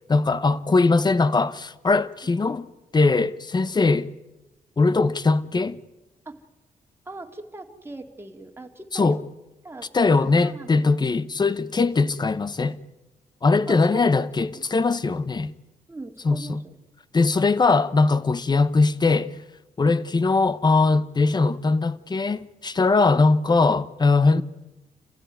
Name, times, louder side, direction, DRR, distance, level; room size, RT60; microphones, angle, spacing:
voice 1, 0.1-2.7 2.9-4.1 4.8-5.8 8.9-9.2 9.9-12.8 13.4-15.5 16.2-16.6 17.1-19.4 19.8-24.4, left 3 dB, 30° left, 1.0 m, -21 dB
voice 2, 7.1-9.3 9.6-10.8 11.6-11.8 13.7-14.1 14.5-14.6 15.9-16.8 19.8-20.0 24.3-24.4, right 2 dB, 15° right, 2.5 m, -40 dB
28.5 x 15.5 x 9.4 m
cardioid pair, 95°, 14 cm